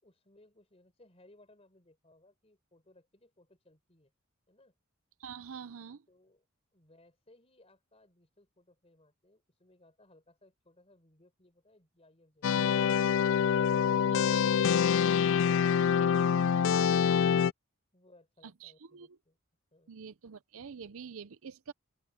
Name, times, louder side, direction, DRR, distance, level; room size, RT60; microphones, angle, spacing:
voice 1, 0.0-4.1 4.5-4.8 6.1-6.4 6.7-13.0 17.9-19.4 19.7-19.9, left 1 dB, 30° left, 4.8 m, -63 dB
voice 2, 5.2-6.1 14.1-14.6 18.4-19.2 19.9-21.7, right 6 dB, 70° right, 0.6 m, -46 dB
sound 1, 12.4-17.5, left 7 dB, 60° left, 0.3 m, -25 dB
open air
head